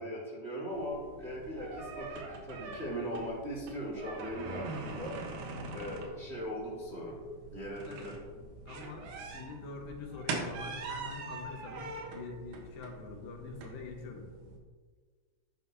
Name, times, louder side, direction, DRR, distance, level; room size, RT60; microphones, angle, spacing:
voice 1, 0.0-5.2 5.7-7.2 7.5-8.1, equal, 30° right, -5 dB, 1.3 m, -39 dB
sound 1, 0.7-14.6, right 3 dB, 75° right, 2.8 m, -43 dB
voice 2, 7.8-8.1 8.7-14.3, left 4 dB, 70° left, 2 dB, 2.9 m, -45 dB
11.5 x 9.5 x 2.7 m, 1.5 s
omnidirectional pair, 4.3 m